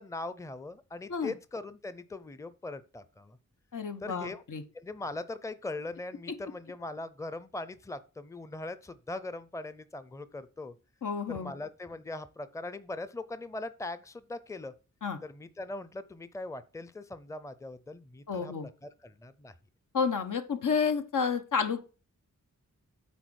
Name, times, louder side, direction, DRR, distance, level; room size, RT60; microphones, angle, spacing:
voice 1, 0.0-3.4 4.0-4.4 4.7-10.7 11.3-14.7 15.2-18.5 18.8-19.5, left 2 dB, 10° left, 0.5 m, -40 dB
voice 2, 3.7-4.6 11.0-11.5 15.0-15.2 18.3-18.7 19.9-21.8, left 6 dB, 85° left, 1.2 m, -30 dB
9.3 x 3.9 x 6.3 m
wide cardioid pair, 105°, 31 cm